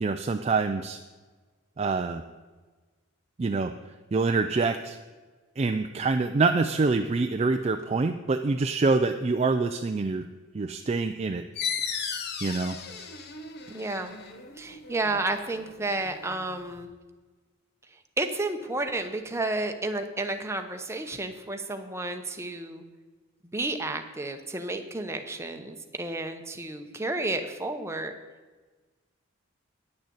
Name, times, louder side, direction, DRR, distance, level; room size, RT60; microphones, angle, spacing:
voice 1, 0.0-1.0 1.8-2.2 3.4-3.7 4.1-5.0 5.6-10.3 10.5-11.4 11.9-12.0 12.4-12.8, right 3 dB, 30° right, 7 dB, 0.4 m, -26 dB
sound 1, 11.6-16.8, left 6 dB, 50° left, 0.9 m, -36 dB
voice 2, 13.7-14.1 14.6-16.9 18.2-22.8 23.5-28.1, right 2 dB, 15° right, 6 dB, 0.8 m, -31 dB
9.7 x 6.4 x 8.7 m, 1.3 s
head